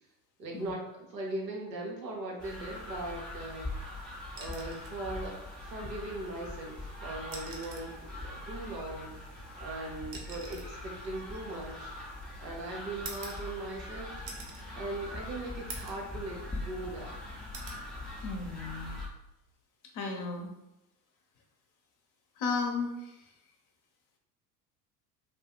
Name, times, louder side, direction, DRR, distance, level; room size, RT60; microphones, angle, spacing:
voice 1, 0.4-3.7 4.4-9.3 9.6-11.9 12.4-17.2, right 2 dB, 90° right, -1 dB, 0.7 m, -40 dB
sound 1, 2.4-19.1, left 1 dB, ahead, 0.4 m, -42 dB
sound 2, 4.4-5.0 6.4-6.5 7.2-8.0 9.2-12.2 13.0-13.9 14.3-14.7 15.1-15.2 15.7-16.1 16.5-17.1 17.5-17.9 19.3-19.5, right 3 dB, 50° right, 0.8 m, -46 dB
voice 2, 18.2-19.0 19.9-20.5 22.4-23.2, left 4 dB, 40° left, 2 dB, 0.7 m, -34 dB
2.2 x 2.0 x 3.4 m, 0.88 s
figure-of-eight pair, 70°, 49 cm